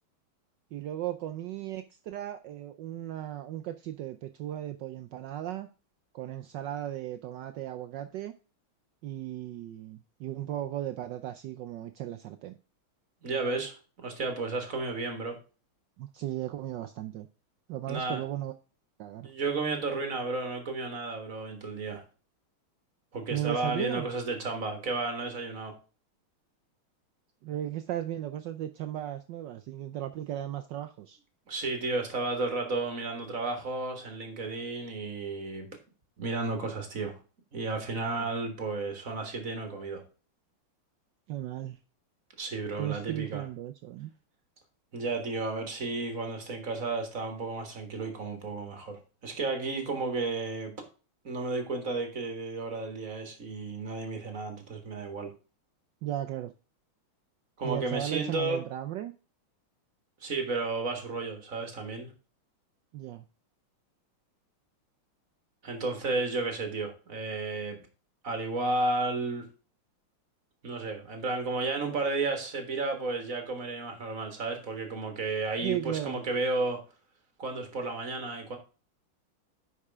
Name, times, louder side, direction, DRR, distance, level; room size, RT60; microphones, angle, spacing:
voice 1, 0.7-5.7 6.1-8.3 9.0-12.6 16.0-17.3 17.7-18.5 19.0-19.3 23.3-24.1 27.4-31.2 38.1-38.3 41.3-41.8 42.8-44.1 56.0-56.5 57.6-59.1 62.9-63.2 75.6-76.2, right 12 dB, 75° right, 1.1 m, -36 dB
voice 2, 13.2-13.7 14.0-15.4 17.9-18.2 19.2-22.0 23.1-25.7 31.5-35.7 36.2-37.1 37.5-40.0 42.4-43.4 44.9-50.7 51.2-55.3 57.6-58.6 60.2-62.1 65.6-67.8 68.2-69.4 70.6-76.8 77.4-78.6, right 3 dB, 40° right, 2.0 m, -32 dB
9.7 x 5.6 x 3.5 m
omnidirectional pair, 2.3 m